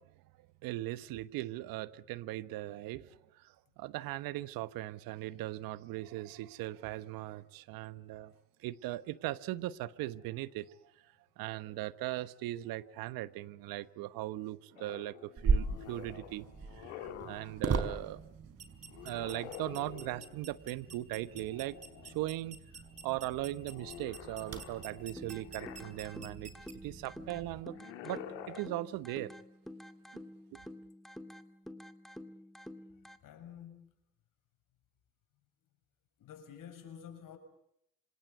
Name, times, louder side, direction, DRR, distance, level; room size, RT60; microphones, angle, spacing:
voice 1, 0.0-8.3 8.6-18.2 19.0-21.8 22.0-22.6 23.0-29.3 30.1-30.2 30.5-30.6, right 16 dB, 75° right, 1.3 m, -39 dB
sound 1, 14.8-17.6 18.9-20.5 21.4-22.4 22.8-26.3 27.6-28.6, left 10 dB, 90° left, 2.7 m, -49 dB
sound 2, 15.4-27.6, right 4 dB, 45° right, 4.9 m, -39 dB
voice 2, 21.2-21.5 32.9-33.9 36.2-37.4, left 8 dB, 65° left, 7.0 m, -51 dB
sound 3, 25.2-33.2, left 1 dB, ahead, 2.4 m, -49 dB
27.0 x 26.5 x 8.3 m
hypercardioid pair, 60°, 35 cm